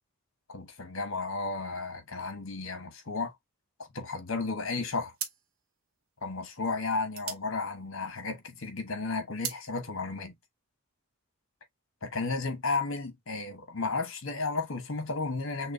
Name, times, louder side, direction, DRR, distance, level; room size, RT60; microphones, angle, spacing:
voice 1, 0.5-3.3 3.8-5.1 6.2-10.3 12.0-15.7, left 3 dB, 65° left, 1.2 m, -33 dB
sound 1, 4.4-4.7 5.1-8.5 8.9-9.7, right 8 dB, 70° right, 0.8 m, -40 dB
6.1 x 2.3 x 2.6 m
head